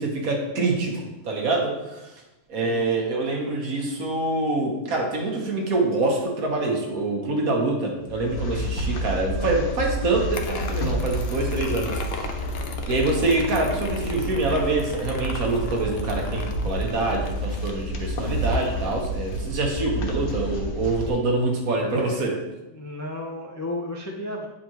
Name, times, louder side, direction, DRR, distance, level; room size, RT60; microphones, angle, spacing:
voice 1, 0.0-2.1 2.5-12.3 12.9-22.4, right 2 dB, 75° right, 0 dB, 1.7 m, -25 dB
voice 2, 2.6-3.1 21.9-22.4 22.7-24.5, left 1 dB, 20° left, 0 dB, 0.4 m, -34 dB
sound 1, 8.0-21.1, equal, 85° left, 1.5 m, -30 dB
sound 2, 10.3-19.6, left 3 dB, 50° left, 0.8 m, -38 dB
9.4 x 5.1 x 3.1 m, 1.0 s
omnidirectional pair, 1.5 m